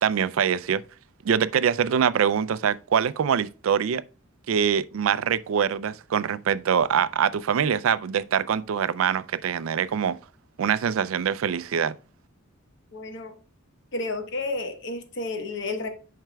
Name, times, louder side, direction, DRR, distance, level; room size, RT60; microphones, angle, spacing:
voice 1, 0.0-0.8 1.2-4.0 4.5-10.2 10.6-11.9, right 7 dB, 75° right, 0.4 m, -24 dB
voice 2, 12.9-13.3 13.9-15.9, left 2 dB, 60° left, 1.1 m, -31 dB
9.0 x 5.7 x 2.3 m
head